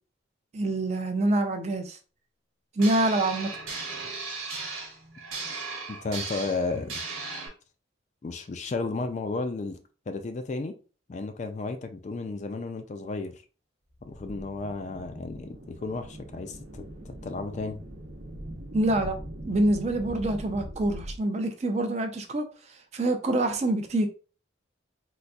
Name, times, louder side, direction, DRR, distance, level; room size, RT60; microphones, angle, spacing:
voice 1, 0.5-2.0 2.8-3.5 18.7-19.2 19.4-22.4 22.9-24.1, right 1 dB, 35° right, 0.4 m, -26 dB
sound 1, 2.8-7.5, right 4 dB, 90° right, 1.2 m, -36 dB
voice 2, 5.9-7.0 8.2-9.8 10.1-10.8 11.1-13.4 14.0-17.8, left 3 dB, 35° left, 0.3 m, -33 dB
sound 2, 13.9-21.2, right 1 dB, 70° right, 0.9 m, -41 dB
3.8 x 2.5 x 2.3 m
head